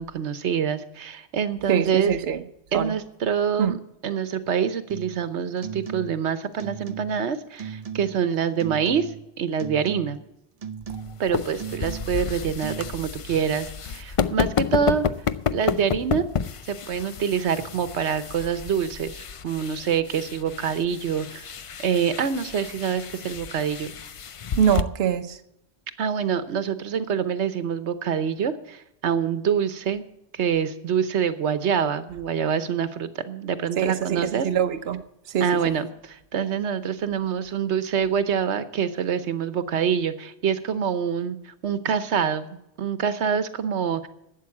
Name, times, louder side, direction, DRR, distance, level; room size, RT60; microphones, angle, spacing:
voice 1, 0.0-2.1 2.7-3.8 4.0-10.2 11.2-15.0 15.5-16.2 16.7-21.4 21.8-23.9 26.0-30.0 30.3-34.5 35.4-42.5 42.8-44.1, right 7 dB, 85° right, 1.2 m, -26 dB
voice 2, 1.7-2.4 2.7-2.9 3.6-3.8 24.6-25.4 33.8-35.6, right 8 dB, 65° right, 1.0 m, -24 dB
sound 1, 4.9-5.2 5.6-6.3 6.6-7.3 7.6-8.2 8.6-9.3 9.6-10.2 10.6-11.3 11.6-12.3 12.6-12.9, right 7 dB, 40° right, 0.7 m, -37 dB
sound 2, 10.9-24.8, left 6 dB, 50° left, 0.4 m, -31 dB
12.5 x 8.4 x 8.4 m
omnidirectional pair, 1.1 m